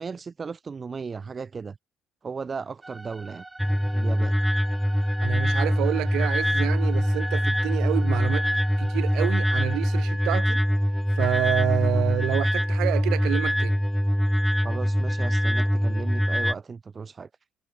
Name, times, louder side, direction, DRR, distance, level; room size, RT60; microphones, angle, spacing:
voice 1, 0.0-1.8 2.2-3.4 3.9-4.3 14.6-17.3, right 5 dB, 35° right, 5.9 m, -36 dB
sound 1, 2.8-10.1, right 2 dB, 15° right, 4.7 m, -45 dB
sound 2, 3.6-16.5, equal, ahead, 2.2 m, -23 dB
voice 2, 5.2-8.5 8.8-10.6 11.2-13.8, right 16 dB, 80° right, 3.1 m, -28 dB
supercardioid pair, 85°, 0 cm